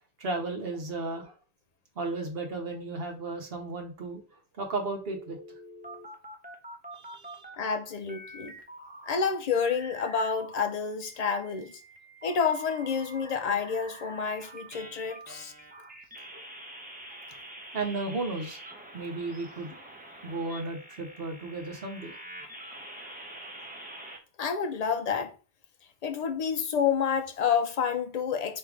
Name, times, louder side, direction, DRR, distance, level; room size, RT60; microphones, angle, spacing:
voice 1, 0.2-1.3 2.0-5.4 6.9-7.5 15.3-15.4 17.7-18.6 18.9-19.8 20.2-22.2, right 3 dB, 70° right, 1.2 m, -34 dB
sound 1, 5.1-7.7 8.1-10.6 11.0-24.2, right 1 dB, 10° right, 0.7 m, -46 dB
voice 2, 7.6-8.6 9.1-11.7 12.2-15.5 24.4-25.3 26.0-28.6, left 6 dB, 45° left, 0.6 m, -29 dB
3.5 x 2.8 x 4.8 m
omnidirectional pair, 1.0 m